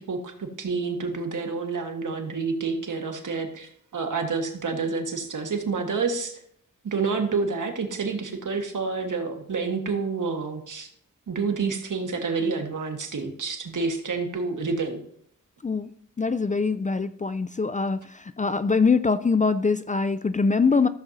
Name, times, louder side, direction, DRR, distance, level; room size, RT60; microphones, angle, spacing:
voice 1, 0.0-6.4 6.8-10.9 11.3-15.0, right 4 dB, 70° right, 4 dB, 1.6 m, -28 dB
voice 2, 16.2-20.9, left 4 dB, 25° left, 13 dB, 0.4 m, -23 dB
14.5 x 7.2 x 2.7 m, 0.66 s
cardioid pair, 60°, 32 cm